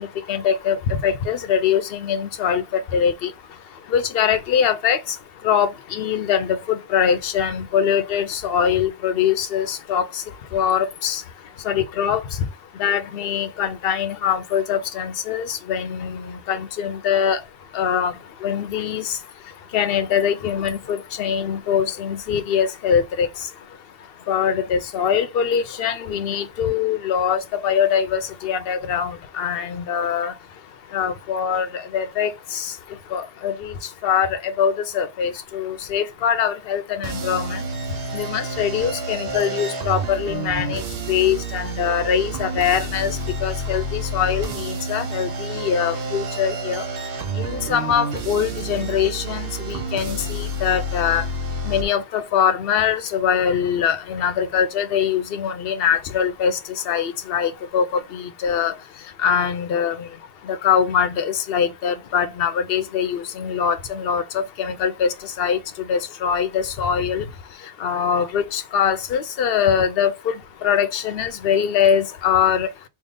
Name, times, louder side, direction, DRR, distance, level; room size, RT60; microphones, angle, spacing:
voice 1, 0.0-72.9, left 8 dB, 65° left, 0.8 m, -23 dB
sound 1, 37.0-51.8, right 2 dB, 60° right, 0.8 m, -29 dB
3.6 x 2.3 x 3.7 m
omnidirectional pair, 1.1 m